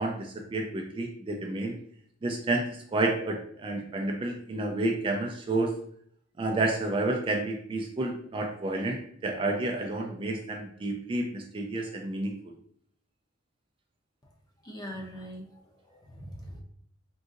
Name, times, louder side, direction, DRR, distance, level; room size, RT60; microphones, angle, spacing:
voice 1, 0.0-1.7 2.2-5.7 6.4-12.3, right 2 dB, 25° right, 1 dB, 0.3 m, -30 dB
voice 2, 14.6-16.6, equal, 20° left, 0 dB, 0.6 m, -42 dB
3.8 x 2.6 x 2.4 m, 0.65 s
head